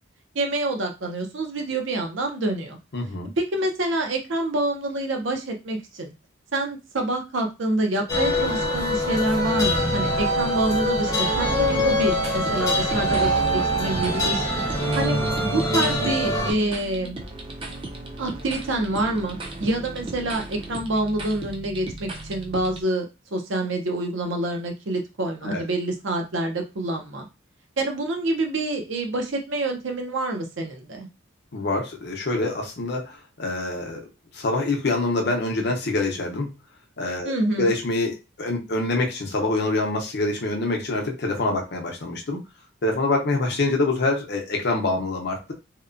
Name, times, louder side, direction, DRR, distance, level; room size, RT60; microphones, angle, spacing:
voice 1, 0.3-2.8 3.4-6.1 6.5-14.5 14.9-17.2 18.2-23.1 23.3-27.3 27.8-31.1 37.2-37.7, right 2 dB, 70° right, 3 dB, 0.6 m, -27 dB
voice 2, 2.9-3.3 13.9-14.2 25.4-25.6 31.5-34.0 34.3-36.5 37.0-42.4 42.8-45.5, left 2 dB, 55° left, 2 dB, 0.6 m, -25 dB
sound 1, 8.1-16.5, equal, 20° left, 0.7 m, -23 dB
sound 2, 11.5-22.8, right 2 dB, 25° right, 0.4 m, -37 dB
2.8 x 2.1 x 2.5 m, 0.26 s
head